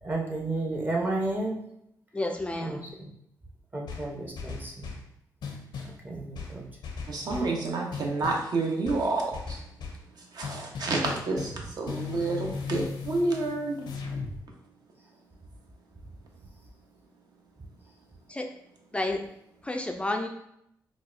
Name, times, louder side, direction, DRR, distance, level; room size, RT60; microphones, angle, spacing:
voice 1, 0.0-1.6 2.6-3.1 3.7-4.9 6.0-6.6 7.2-7.3, right 2 dB, 25° right, -1 dB, 0.7 m, -32 dB
voice 2, 2.1-2.8 18.3-18.5 18.9-19.2 19.6-20.3, left 2 dB, 15° left, 4 dB, 0.3 m, -30 dB
sound 1, 3.9-5.1 5.4-6.0 6.3-7.6 7.9-8.5 8.8-10.0 10.4-11.6 11.9-14.4, left 5 dB, 80° left, 0.6 m, -38 dB
voice 3, 7.1-9.6 10.3-13.9, right 3 dB, 60° right, 0 dB, 0.7 m, -29 dB
3.9 x 2.3 x 2.4 m, 0.77 s
cardioid pair, 85°, 7 cm